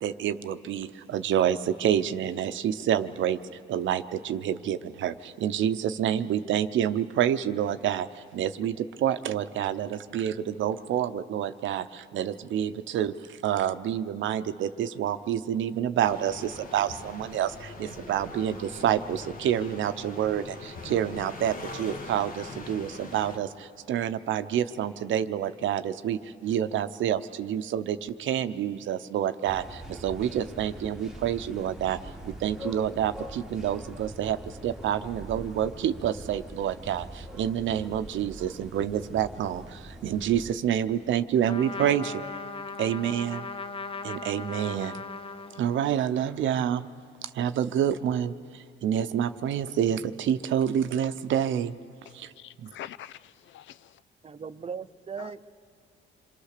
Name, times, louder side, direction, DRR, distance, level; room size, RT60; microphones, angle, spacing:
voice 1, 0.0-3.4 3.7-5.1 5.4-8.1 8.3-8.7 9.0-11.8 12.1-13.1 13.4-17.5 17.8-18.6 18.8-20.4 20.9-23.5 23.9-29.6 30.0-32.0 32.4-34.4 34.6-37.0 37.4-39.6 40.0-42.1 42.8-43.4 44.0-44.9 45.6-46.8 47.4-48.3 48.8-51.7, right 10 dB, 75° right, 0.8 m, -27 dB
sound 1, 16.0-23.4, left 3 dB, 45° left, 1.5 m, -42 dB
sound 2, 29.5-40.6, right 1 dB, ahead, 1.2 m, -43 dB
Trumpet, 41.4-46.0, left 4 dB, 30° left, 0.6 m, -38 dB
voice 2, 52.4-53.9 55.2-55.3, left 11 dB, 70° left, 0.5 m, -44 dB
voice 3, 54.2-55.4, right 6 dB, 30° right, 0.7 m, -38 dB
26.5 x 23.0 x 6.7 m
cardioid pair, 90°, 20 cm